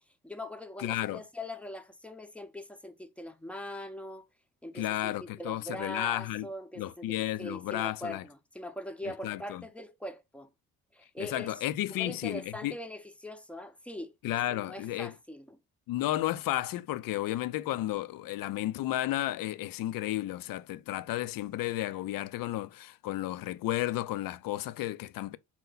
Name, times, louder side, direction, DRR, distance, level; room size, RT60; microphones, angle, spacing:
voice 1, 0.0-4.3 4.6-7.1 7.4-10.5 10.9-11.6 12.0-14.1 14.5-15.6, left 1 dB, 5° left, 0.6 m, -42 dB
voice 2, 0.8-1.2 4.8-6.5 6.8-8.2 9.2-9.6 11.2-12.8 14.2-15.1 15.9-25.4, left 14 dB, 65° left, 0.5 m, -33 dB
4.4 x 2.2 x 3.8 m
cardioid pair, 90°, 37 cm